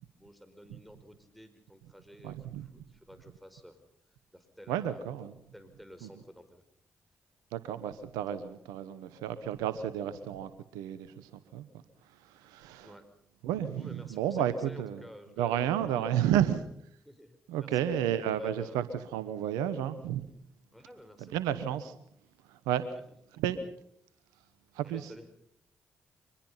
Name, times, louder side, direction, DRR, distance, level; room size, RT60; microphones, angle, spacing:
voice 1, 0.2-3.8 4.1-5.1 5.5-6.6 7.9-8.0 12.8-13.1 13.7-16.6 17.0-18.0 18.3-18.8 20.7-21.4 24.8-25.3, equal, ahead, 8 dB, 5.0 m, -52 dB
voice 2, 2.2-2.7 4.7-5.3 6.0-6.1 7.5-11.8 12.1-12.9 13.4-15.0 15.4-16.6 17.5-20.2 21.3-22.0 22.5-22.8 23.4-23.6 24.7-25.1, right 10 dB, 85° right, 14 dB, 1.0 m, -32 dB
24.0 x 20.5 x 5.7 m, 0.68 s
hypercardioid pair, 40°, 6 cm